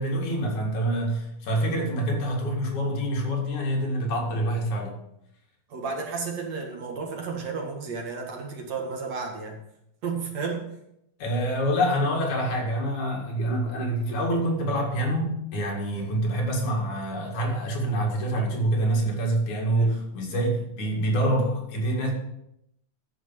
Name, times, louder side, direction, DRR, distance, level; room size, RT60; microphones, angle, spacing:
voice 1, 0.0-5.0 11.2-22.1, right 1 dB, 65° left, -1 dB, 3.5 m, -26 dB
voice 2, 1.5-1.8 5.7-9.6 10.0-10.7 15.9-16.2 19.8-19.9, right 4 dB, 55° right, 0 dB, 2.8 m, -33 dB
12.5 x 5.2 x 7.5 m, 0.81 s
omnidirectional pair, 3.8 m